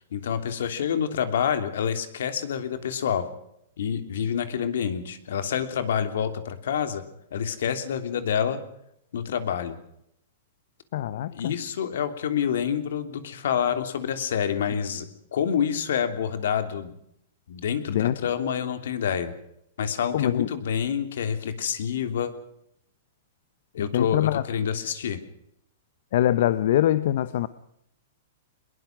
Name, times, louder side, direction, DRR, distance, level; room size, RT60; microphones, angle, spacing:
voice 1, 0.1-3.3 3.8-7.0 7.3-8.6 9.1-9.8 11.3-15.1 15.3-16.9 17.5-19.3 19.8-22.3 23.7-25.2, left 8 dB, 75° left, 9 dB, 3.2 m, -27 dB
voice 2, 10.9-11.6 17.9-18.2 20.1-20.5 23.8-24.4 26.1-27.5, left 12 dB, 60° left, 15 dB, 0.9 m, -23 dB
23.0 x 21.5 x 6.2 m, 0.74 s
hypercardioid pair, 160°, 0 cm